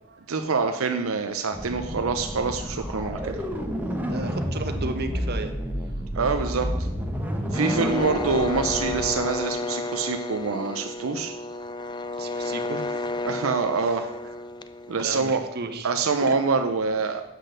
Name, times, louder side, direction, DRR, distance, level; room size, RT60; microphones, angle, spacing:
voice 1, 0.3-3.4 6.1-6.7 7.5-11.3 13.2-14.0 14.9-15.4 15.8-17.2, right 4 dB, 75° right, 6 dB, 0.6 m, -25 dB
sound 1, 1.5-9.1, equal, 10° right, 1.0 m, -30 dB
voice 2, 3.3-5.5 12.2-13.0 13.8-14.1 15.0-15.9 16.2-16.3, right 2 dB, 50° right, 7 dB, 0.9 m, -35 dB
sound 2, 7.5-15.3, left 2 dB, 20° left, 0.4 m, -32 dB
8.1 x 6.5 x 6.4 m, 0.97 s
head